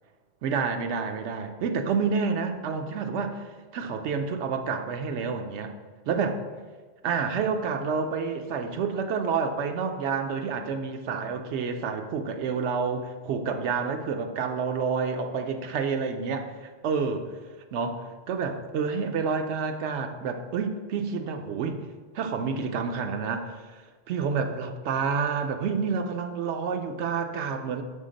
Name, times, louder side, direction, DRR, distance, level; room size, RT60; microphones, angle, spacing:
voice 1, 0.4-3.4 3.7-5.7 6.1-6.4 7.0-16.5 16.8-17.3 17.7-21.8 22.1-23.5 24.1-27.8, right 5 dB, 80° right, 6 dB, 0.9 m, -29 dB
5.6 x 3.4 x 5.1 m, 1.4 s
omnidirectional pair, 1.2 m